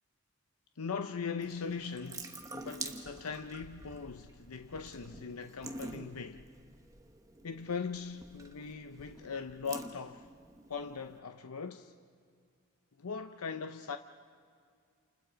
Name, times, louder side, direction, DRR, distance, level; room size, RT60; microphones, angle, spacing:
voice 1, 0.8-6.5 7.4-10.3 10.7-11.9 13.0-14.0, left 5 dB, 90° left, 0.7 m, -40 dB
Water tap faucet / Sink (filling or washing) / Drip, 1.4-11.2, right 2 dB, 15° right, 1.1 m, -48 dB
28.5 x 28.5 x 5.1 m
head